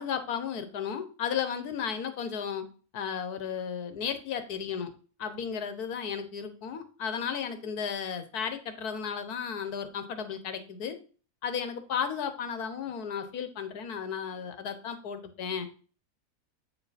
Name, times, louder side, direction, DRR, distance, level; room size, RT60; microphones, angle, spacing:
voice 1, 0.0-2.6 2.9-4.9 5.2-11.0 11.4-15.7, left 7 dB, 85° left, 9 dB, 1.5 m, -34 dB
8.3 x 4.8 x 4.2 m, 0.39 s
omnidirectional pair, 1.6 m